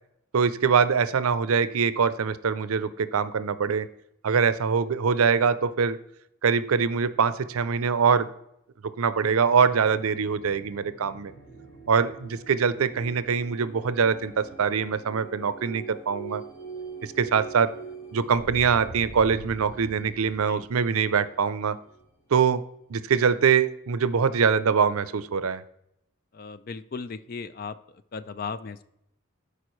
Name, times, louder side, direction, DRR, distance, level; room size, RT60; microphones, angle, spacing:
voice 1, 0.3-3.9 4.2-6.0 6.4-8.3 9.0-11.3 11.9-16.4 17.0-17.7 18.1-21.8 22.3-22.6 22.9-25.6, right 6 dB, 90° right, 14 dB, 0.5 m, -23 dB
sound 1, 9.1-22.6, right 4 dB, 60° left, 2.9 m, -43 dB
voice 2, 26.3-27.7 28.1-28.8, left 5 dB, 45° left, 13 dB, 0.4 m, -36 dB
13.0 x 4.9 x 3.1 m, 0.79 s
head